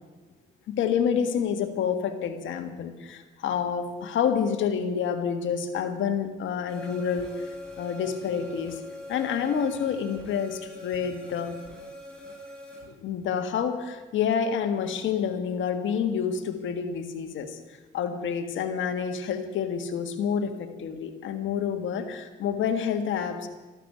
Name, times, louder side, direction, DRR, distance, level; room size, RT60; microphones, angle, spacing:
voice 1, 0.7-7.3 7.8-8.8 9.1-11.6 12.8-17.6 17.9-23.5, left 7 dB, 85° left, 7 dB, 1.7 m, -28 dB
sound 1, 6.7-12.8, left 1 dB, 5° left, 6.5 m, -42 dB
13.5 x 12.5 x 8.5 m, 1.2 s
cardioid pair, 70°, 19 cm